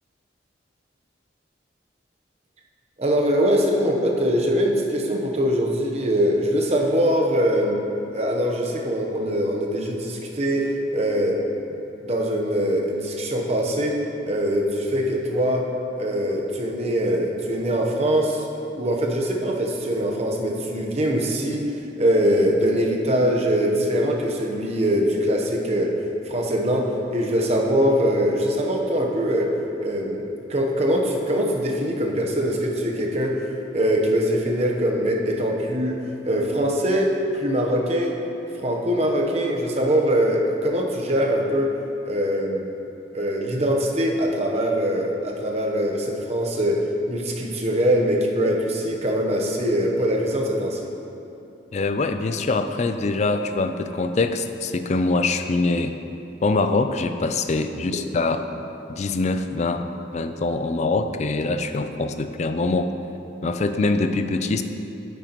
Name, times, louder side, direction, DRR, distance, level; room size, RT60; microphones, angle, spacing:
voice 1, 3.0-7.8 8.1-11.4 12.0-13.9 14.2-15.6 16.0-18.4 18.7-21.6 22.0-25.9 26.3-26.8 27.1-29.5 29.8-30.2 30.5-33.4 33.7-36.0 36.2-38.1 38.5-41.7 42.0-42.6 43.1-46.8 47.1-50.8 57.9-58.0, equal, 35° right, 0 dB, 0.9 m, -22 dB
voice 2, 51.7-56.0 56.4-58.4 58.9-59.9 60.1-62.9 63.4-64.6, left 3 dB, 40° left, 8 dB, 0.4 m, -23 dB
9.2 x 9.0 x 3.0 m, 2.8 s
head